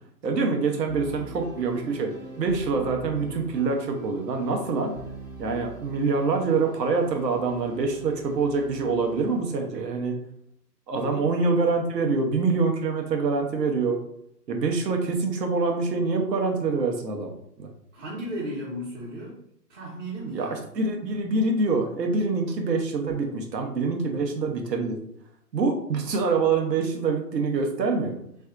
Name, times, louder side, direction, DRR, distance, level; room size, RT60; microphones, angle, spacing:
voice 1, 0.2-4.9 5.4-10.2 10.9-14.0 14.5-17.7 20.3-25.0 25.5-28.2, right 4 dB, 75° right, 3 dB, 0.9 m, -25 dB
sound 1, 0.9-9.6, right 2 dB, 25° right, 0.5 m, -42 dB
voice 2, 11.0-11.4 17.9-19.4 19.7-20.7, right 1 dB, 45° right, -7 dB, 1.0 m, -35 dB
3.3 x 2.6 x 2.4 m, 0.71 s
hypercardioid pair, 140°, 50 cm